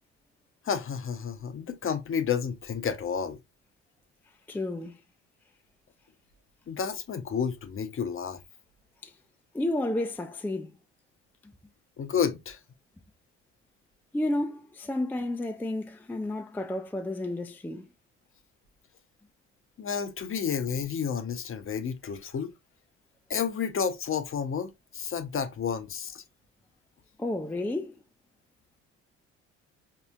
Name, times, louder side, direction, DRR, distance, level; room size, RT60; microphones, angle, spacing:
voice 1, 0.6-3.4 6.7-8.4 12.0-12.6 19.8-22.5 23.3-26.2, left 7 dB, 40° left, 0.8 m, -31 dB
voice 2, 4.5-5.0 9.0-9.1 9.5-10.7 11.4-11.5 14.1-17.9 27.2-28.0, left 1 dB, 5° left, 0.5 m, -31 dB
4.8 x 2.8 x 2.3 m
hypercardioid pair, 55°, 33 cm